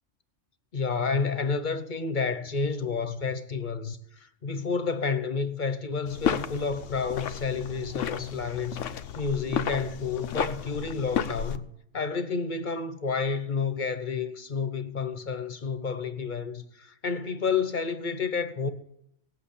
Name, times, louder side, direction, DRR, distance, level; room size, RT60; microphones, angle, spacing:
voice 1, 0.7-11.7 11.9-18.7, left 5 dB, 45° left, 1.0 m, -30 dB
sound 1, 6.1-11.6, left 8 dB, 90° left, 1.1 m, -32 dB
17.5 x 8.1 x 8.5 m
omnidirectional pair, 1.2 m